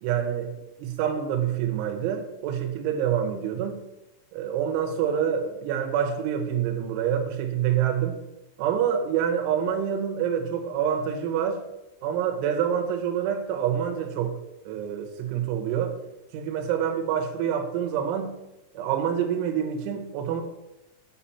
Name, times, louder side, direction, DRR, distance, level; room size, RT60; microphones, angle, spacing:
voice 1, 0.0-3.9 4.3-8.2 8.6-11.7 12.0-16.0 16.3-18.4 18.7-20.4, right 8 dB, 80° right, 3.3 m, -27 dB
9.0 x 4.1 x 5.6 m
omnidirectional pair, 5.5 m